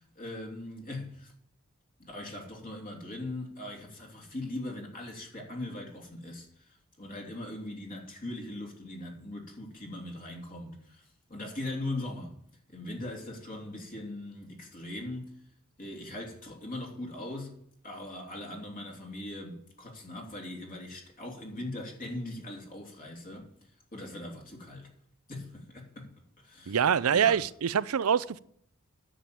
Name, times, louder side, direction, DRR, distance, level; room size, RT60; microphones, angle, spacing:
voice 1, 0.0-1.3 2.0-12.3 12.7-15.3 15.8-17.5 17.8-23.5 23.9-24.9 25.3-26.1 26.4-26.8 27.1-27.4, left 1 dB, 40° left, 3.2 m, -40 dB
voice 2, 26.7-28.4, right 7 dB, 80° right, 0.5 m, -25 dB
10.0 x 7.7 x 8.7 m
head